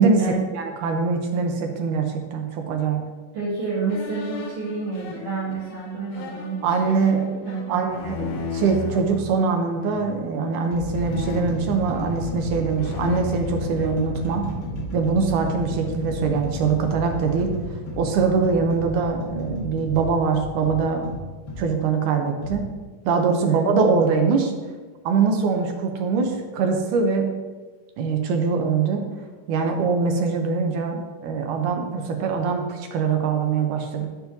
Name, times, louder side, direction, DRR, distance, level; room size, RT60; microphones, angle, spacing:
voice 1, 0.0-3.0 6.6-7.4 7.7-14.5 14.9-17.5 18.0-21.1 21.6-22.7 23.1-24.5 25.1-27.3 28.0-29.0 29.5-34.1, right 5 dB, 80° right, 4 dB, 2.0 m, -23 dB
voice 2, 3.3-6.6 6.9-8.1 23.4-23.9, right 4 dB, 65° right, -9 dB, 3.0 m, -30 dB
sound 1, 3.9-9.2 9.8-10.3 11.0-12.4 12.7-14.7, left 5 dB, 90° left, 2.6 m, -35 dB
sound 2, 8.4-8.7 9.6-9.7 10.4-21.7 22.4-22.6, equal, 50° left, 1.5 m, -32 dB
10.5 x 4.7 x 2.6 m, 1.3 s
omnidirectional pair, 4.0 m